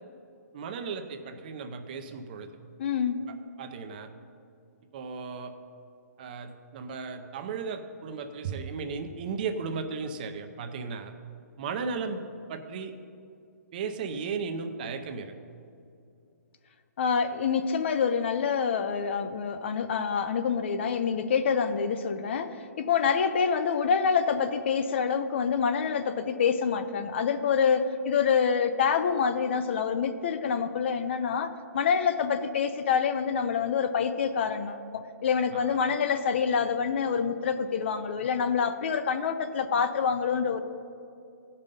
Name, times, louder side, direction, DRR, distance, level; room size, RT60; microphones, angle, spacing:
voice 1, 0.5-2.5 3.6-4.1 4.9-5.5 6.2-11.1 11.6-12.2 12.5-12.9 13.7-15.3 35.5-35.8, right 5 dB, 30° right, 7 dB, 0.6 m, -35 dB
voice 2, 2.8-3.3 17.0-40.6, left 6 dB, 40° left, 10 dB, 0.5 m, -26 dB
15.5 x 5.4 x 5.3 m, 2.5 s
hypercardioid pair, 165°, 9 cm